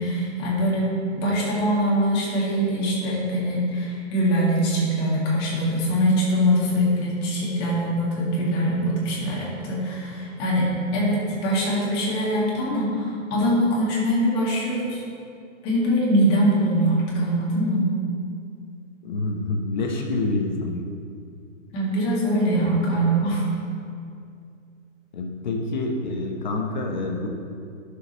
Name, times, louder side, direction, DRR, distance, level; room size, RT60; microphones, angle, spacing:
voice 1, 0.0-15.0 15.6-17.9 21.7-23.4, equal, 20° left, -5 dB, 2.0 m, -23 dB
voice 2, 19.0-20.8 25.1-27.3, left 2 dB, 35° left, 1 dB, 1.0 m, -27 dB
10.5 x 6.6 x 5.6 m, 2.4 s
hypercardioid pair, 170°, 39 cm